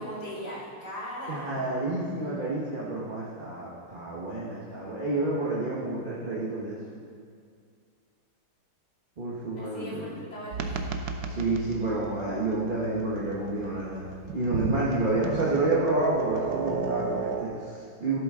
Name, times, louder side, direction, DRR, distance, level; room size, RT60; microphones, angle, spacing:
voice 1, 0.0-1.7 9.6-11.0, equal, 50° left, -7 dB, 3.1 m, -39 dB
voice 2, 1.3-6.8 9.2-10.1 11.2-14.0 14.3-18.2, right 2 dB, 30° right, -6 dB, 1.1 m, -29 dB
sound 1, 10.5-17.4, right 5 dB, 65° right, 1.0 m, -34 dB
13.5 x 7.9 x 3.7 m, 2.2 s
omnidirectional pair, 2.3 m